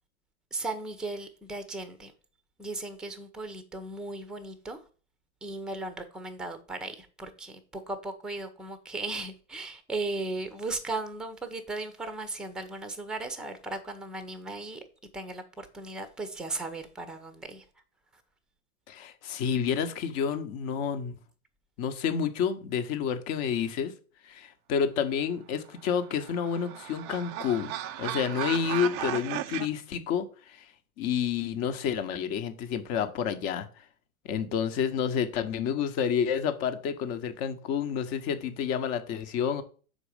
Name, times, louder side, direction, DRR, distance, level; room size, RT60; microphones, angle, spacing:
voice 1, 0.5-2.1 2.6-4.8 5.4-14.8 15.1-17.6, right 2 dB, ahead, 0.7 m, -36 dB
voice 2, 18.9-21.2 21.8-23.9 24.2-27.7 28.0-30.7 31.0-33.7 34.2-39.6, left 7 dB, 35° left, 1.1 m, -29 dB
sound 1, 25.8-29.7, right 12 dB, 25° right, 0.4 m, -35 dB
6.3 x 4.6 x 5.0 m
hypercardioid pair, 110°, 43 cm